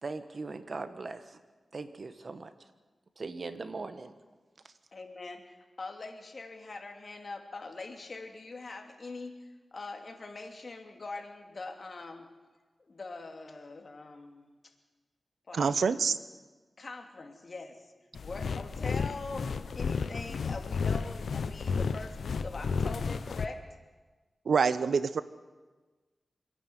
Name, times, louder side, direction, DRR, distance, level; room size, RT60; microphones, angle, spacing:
voice 1, 0.0-1.4 1.7-2.5 3.2-4.1 4.6-4.7, right 3 dB, 55° right, 10 dB, 1.4 m, -40 dB
voice 2, 4.9-12.3 12.8-14.5 15.5-16.1 16.8-17.9 18.2-19.5 19.7-23.6, left 3 dB, 55° left, 3 dB, 2.8 m, -43 dB
voice 3, 15.5-16.2 24.5-25.2, right 5 dB, 85° right, 14 dB, 0.8 m, -26 dB
sound 1, 18.1-23.5, left 5 dB, 85° left, 0.8 m, -32 dB
26.0 x 11.0 x 9.4 m, 1.3 s
cardioid pair, 60°, 0 cm